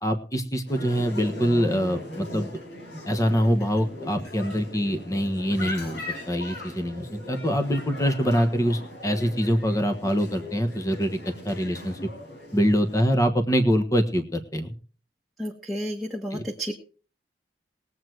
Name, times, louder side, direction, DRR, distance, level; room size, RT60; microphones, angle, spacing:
voice 1, 0.0-2.5 3.0-6.0 6.3-11.2 11.4-12.0 12.5-14.7 16.3-16.4, equal, 20° left, 7 dB, 1.3 m, -24 dB
sound 1, 0.7-13.0, left 1 dB, 65° left, 4.9 m, -39 dB
voice 2, 15.4-16.7, equal, ahead, -2 dB, 1.4 m, -31 dB
20.5 x 7.9 x 4.7 m, 0.40 s
head